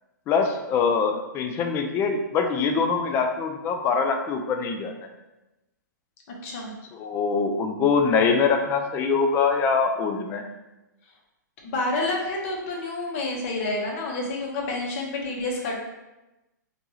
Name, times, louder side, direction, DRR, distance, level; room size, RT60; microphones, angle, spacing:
voice 1, 0.3-4.9 6.9-10.4, left 5 dB, 20° left, 5 dB, 0.4 m, -23 dB
voice 2, 6.3-6.7 11.6-15.8, left 2 dB, 40° left, -2 dB, 0.9 m, -29 dB
4.6 x 2.6 x 2.9 m, 1.0 s
figure-of-eight pair, 115°, 11 cm